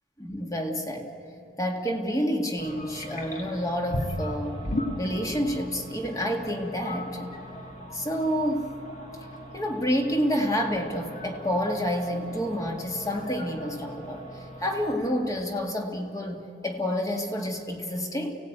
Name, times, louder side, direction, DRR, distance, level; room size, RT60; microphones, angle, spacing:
voice 1, 0.2-1.1 1.6-4.6 5.0-7.3 7.9-8.7 9.5-14.2 14.6-18.4, equal, 20° left, 2 dB, 2.0 m, -29 dB
sound 1, 2.6-15.0, equal, 45° left, 2.3 m, -38 dB
29.5 x 17.0 x 9.0 m, 3.0 s
head